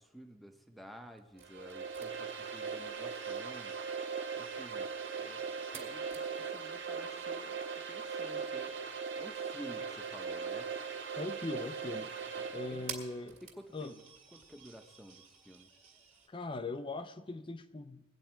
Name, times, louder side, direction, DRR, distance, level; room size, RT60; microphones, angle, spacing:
voice 1, 0.0-3.8 4.3-4.9 5.2-8.7 9.2-10.7 12.4-12.8 13.4-14.0 14.3-15.7, equal, ahead, 5 dB, 0.8 m, -52 dB
sound 1, 1.1-16.3, right 6 dB, 35° right, 1.9 m, -55 dB
sound 2, 1.4-13.1, right 5 dB, 65° right, 1.1 m, -39 dB
voice 2, 11.2-12.1 12.5-13.4 13.7-13.9 16.3-18.0, left 2 dB, 25° left, 10 dB, 0.5 m, -40 dB
20.5 x 8.4 x 4.5 m, 1.0 s
head